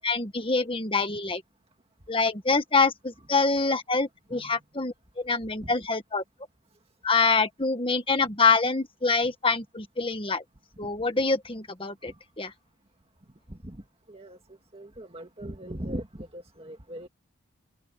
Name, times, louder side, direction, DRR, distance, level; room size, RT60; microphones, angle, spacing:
voice 1, 0.0-1.4 2.1-6.2 7.0-10.4 10.8-12.5, left 4 dB, 25° left, 1.7 m, -25 dB
voice 2, 14.7-16.0 16.3-17.1, right 1 dB, 30° right, 2.2 m, -38 dB
head